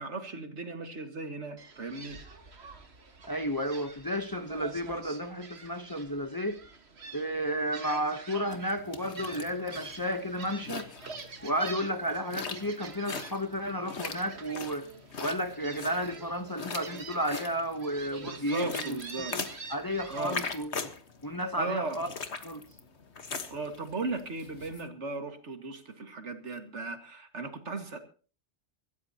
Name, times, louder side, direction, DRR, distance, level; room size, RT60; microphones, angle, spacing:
voice 1, 0.0-2.2 18.2-19.4 20.1-20.4 21.6-22.0 23.5-28.0, right 3 dB, 85° right, 2.3 m, -37 dB
Gull seagull, 1.6-20.6, right 4 dB, 65° right, 1.8 m, -47 dB
voice 2, 3.3-6.6 7.1-10.9 11.4-14.9 15.2-20.9 21.2-22.1 22.4-22.6, equal, 20° left, 0.9 m, -32 dB
sound 1, 8.5-24.8, left 5 dB, 70° left, 1.7 m, -41 dB
25.5 x 13.5 x 2.9 m
omnidirectional pair, 1.2 m